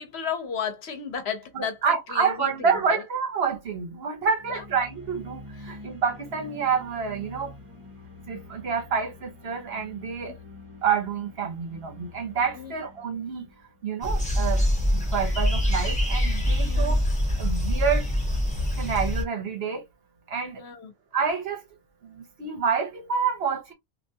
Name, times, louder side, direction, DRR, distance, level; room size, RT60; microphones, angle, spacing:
voice 1, 0.0-1.8 2.1-3.0 4.5-4.6 5.6-5.8 12.5-12.7 16.6-17.0 20.6-20.9, left 7 dB, 75° left, 1.0 m, -34 dB
voice 2, 1.5-7.5 8.3-10.4 10.8-13.5 13.8-14.7 14.9-17.0 17.4-18.1 18.8-19.8 20.3-20.6 21.1-21.6 22.0-23.7, right 6 dB, 70° right, 1.1 m, -28 dB
sound 1, 4.3-14.4, left 2 dB, 30° right, 1.1 m, -46 dB
sound 2, 14.0-19.2, equal, 5° left, 1.4 m, -24 dB
3.4 x 2.5 x 2.7 m
omnidirectional pair, 1.1 m